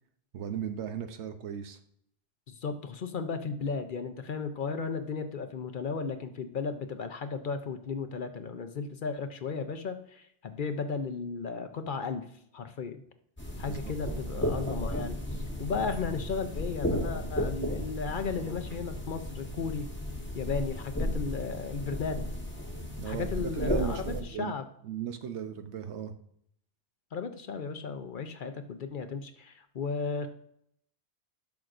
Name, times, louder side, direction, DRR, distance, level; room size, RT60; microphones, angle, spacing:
voice 1, 0.3-1.8 13.7-13.9 14.3-14.4 23.0-24.6 24.8-26.1, right 8 dB, 85° right, 8 dB, 1.0 m, -37 dB
voice 2, 2.5-12.3 12.5-13.0 13.6-19.9 20.3-22.2 23.0-24.7 27.1-30.3, left 5 dB, 55° left, 8 dB, 0.7 m, -35 dB
sound 1, 13.4-24.2, equal, 10° left, 1.2 m, -34 dB
10.5 x 6.2 x 2.5 m, 0.70 s
omnidirectional pair, 1.1 m